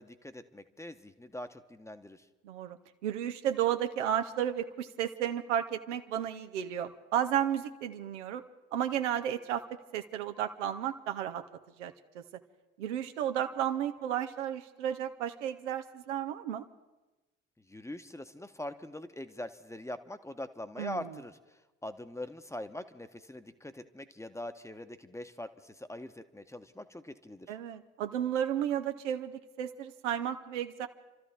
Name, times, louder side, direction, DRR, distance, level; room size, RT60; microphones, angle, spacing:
voice 1, 0.0-2.2 17.7-21.4 21.8-27.5, left 1 dB, 10° left, 10 dB, 1.0 m, -43 dB
voice 2, 2.4-8.4 8.7-9.6 9.9-11.4 11.8-12.2 12.8-16.6 20.8-21.0 27.5-30.9, right 10 dB, 85° right, 7 dB, 0.9 m, -33 dB
30.0 x 13.0 x 3.6 m, 1.1 s
hypercardioid pair, 55°, 35 cm